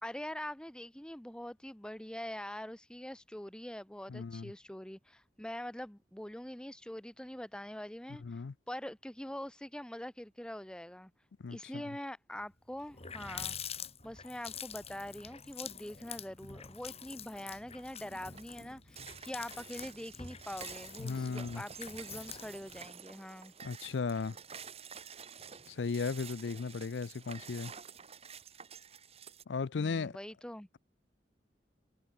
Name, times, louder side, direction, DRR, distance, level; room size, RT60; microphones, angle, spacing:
voice 1, 0.0-11.1 11.5-13.7 14.0-23.5 29.7-30.7, left 1 dB, 5° left, 0.7 m, -44 dB
voice 2, 4.1-4.5 8.2-8.5 11.4-11.8 21.0-21.6 23.6-24.4 25.7-27.7 29.5-30.2, left 4 dB, 80° left, 0.5 m, -36 dB
Water tap faucet, 12.4-12.5 12.8-22.9, left 7 dB, 35° left, 4.3 m, -46 dB
sound 1, 17.0-17.4 17.8-29.4, right 7 dB, 35° right, 1.8 m, -50 dB
head